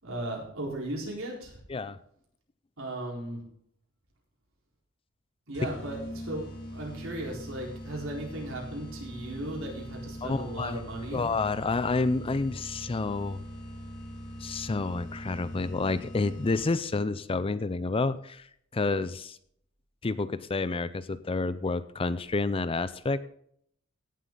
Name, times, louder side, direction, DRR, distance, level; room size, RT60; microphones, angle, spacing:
voice 1, 0.0-1.6 2.8-3.4 5.5-11.3, right 1 dB, 65° right, -2 dB, 4.3 m, -36 dB
sound 1, 5.5-16.9, equal, 60° left, 4.8 m, -42 dB
voice 2, 10.2-10.8 11.1-13.4 14.4-18.5 18.7-19.4 20.0-23.2, left 3 dB, 25° left, 15 dB, 0.5 m, -29 dB
17.0 x 7.6 x 3.9 m, 0.67 s
head